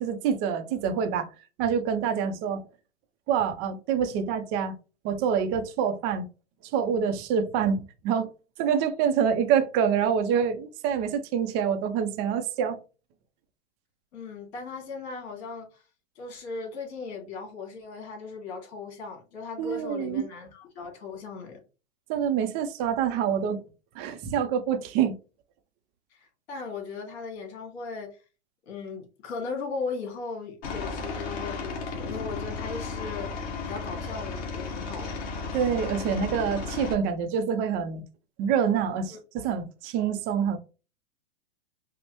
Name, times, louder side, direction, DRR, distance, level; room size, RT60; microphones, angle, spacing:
voice 1, 0.0-1.3 1.6-2.6 3.3-4.7 5.0-6.3 6.6-8.3 8.6-12.8 19.6-20.2 22.1-23.6 24.0-25.2 35.5-38.0 38.4-40.6, right 7 dB, 25° right, 0.5 m, -26 dB
voice 2, 14.1-15.8 16.2-21.6 26.1-28.1 28.7-35.2 35.5-35.6 39.1-39.2, left 4 dB, 60° left, 2.2 m, -37 dB
Aircraft, 30.6-36.9, left 4 dB, 40° left, 1.6 m, -34 dB
5.3 x 2.1 x 2.9 m
hypercardioid pair, 140°, 35 cm